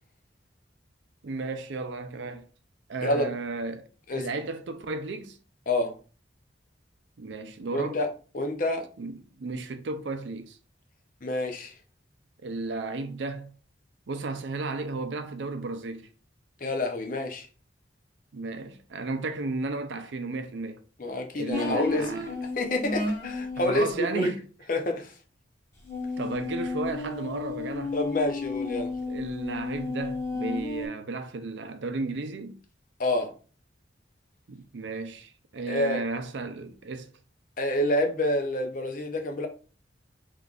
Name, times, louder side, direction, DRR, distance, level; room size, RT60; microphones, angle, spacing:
voice 1, 1.2-2.5 2.9-5.4 7.2-8.0 9.0-10.6 12.4-13.5 14.1-16.1 18.3-20.8 21.4-22.3 23.6-24.4 26.2-28.0 29.1-32.6 34.5-37.1, right 3 dB, 75° right, 0.5 m, -34 dB
voice 2, 7.7-8.1 8.3-8.8 11.2-11.7 16.6-17.5 21.0-22.1 22.6-24.3 24.7-25.1 27.9-28.9 33.0-33.3 35.7-36.0 37.6-39.5, left 1 dB, 45° left, 0.6 m, -27 dB
sound 1, 21.5-23.8 25.8-30.9, left 3 dB, 15° left, 1.2 m, -33 dB
3.7 x 3.2 x 2.4 m
head